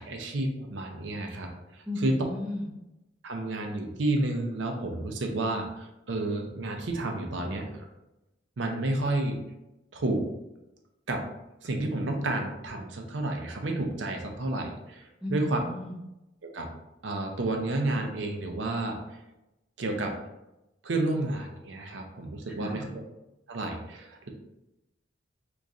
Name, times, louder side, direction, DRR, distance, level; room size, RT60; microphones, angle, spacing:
voice 1, 0.0-1.5 2.0-2.1 3.2-7.7 8.6-9.4 9.9-10.2 11.1-11.2 11.6-15.6 16.5-16.7 17.0-19.2 19.8-20.1 20.8-22.8 23.5-24.3, right 2 dB, 80° right, 3 dB, 0.6 m, -30 dB
voice 2, 1.9-2.7 15.2-16.0 22.6-22.9, left 1 dB, 5° right, -5 dB, 0.5 m, -35 dB
3.0 x 2.6 x 3.5 m, 0.93 s
head